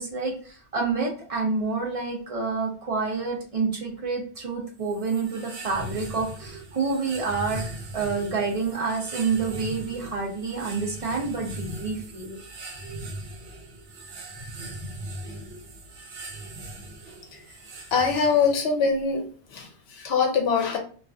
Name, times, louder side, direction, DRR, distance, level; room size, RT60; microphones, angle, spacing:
voice 1, 0.0-7.6 7.9-12.4, right 4 dB, 50° right, 0 dB, 0.4 m, -28 dB
sound 1, 4.8-18.7, right 2 dB, 90° right, 0.9 m, -39 dB
voice 2, 17.9-19.2 19.5-20.8, left 5 dB, 70° left, 3 dB, 0.8 m, -23 dB
2.4 x 2.4 x 2.2 m, 0.43 s
omnidirectional pair, 1.2 m